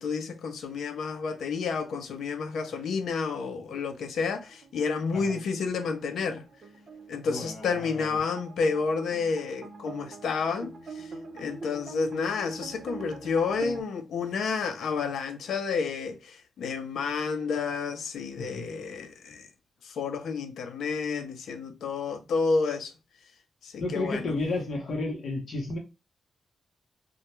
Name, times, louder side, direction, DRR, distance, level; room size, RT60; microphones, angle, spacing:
voice 1, 0.0-6.4 7.1-11.1 11.3-19.5 19.8-22.9 23.6-24.3, left 5 dB, 85° left, 0.4 m, -30 dB
sound 1, 4.5-13.8, right 4 dB, 45° right, 0.5 m, -44 dB
voice 2, 7.3-8.2 18.4-18.7 23.8-25.8, left 2 dB, 55° left, 0.8 m, -32 dB
2.2 x 2.1 x 2.9 m
wide cardioid pair, 140°, 0 cm